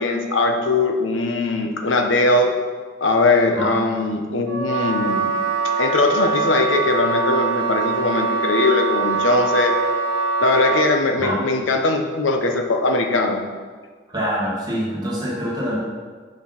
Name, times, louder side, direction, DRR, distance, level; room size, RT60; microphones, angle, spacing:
voice 1, 0.0-2.5 3.0-5.3 5.8-9.7 10.4-13.4, left 2 dB, 80° left, 4 dB, 0.9 m, -20 dB
Wind instrument woodwind instrument, 4.5-11.0, right 4 dB, 75° right, 1.0 m, -23 dB
voice 2, 14.1-15.8, equal, 20° right, -6 dB, 1.9 m, -25 dB
6.0 x 5.2 x 5.8 m, 1.5 s
head